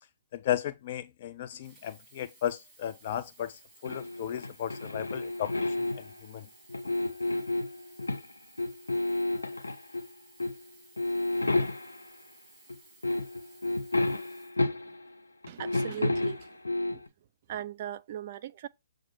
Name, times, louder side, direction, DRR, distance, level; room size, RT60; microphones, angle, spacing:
voice 1, 0.3-6.5, left 11 dB, 40° left, 0.4 m, -35 dB
Sink (filling or washing), 1.5-15.3 16.0-16.1, right 3 dB, 10° right, 2.1 m, -58 dB
sound 1, 3.8-6.2 6.7-8.3 8.6-10.1 10.4-10.6 11.0-12.1 12.7-12.8 13.0-15.1 15.4-17.1, left 2 dB, 75° left, 0.8 m, -31 dB
voice 2, 15.5-16.6 16.9-17.0 17.5-18.7, right 11 dB, 40° right, 0.4 m, -39 dB
7.4 x 2.6 x 5.6 m
figure-of-eight pair, 125°, 0 cm